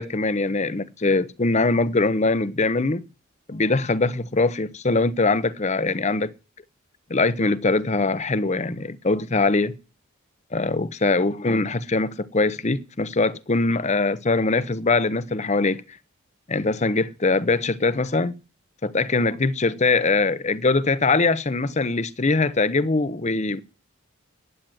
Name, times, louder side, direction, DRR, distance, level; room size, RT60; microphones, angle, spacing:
voice 1, 0.0-3.1 3.5-6.3 7.1-9.7 10.5-15.8 16.5-18.3 18.8-23.6, left 3 dB, 30° left, 0.7 m, -22 dB
12.0 x 9.4 x 9.1 m
head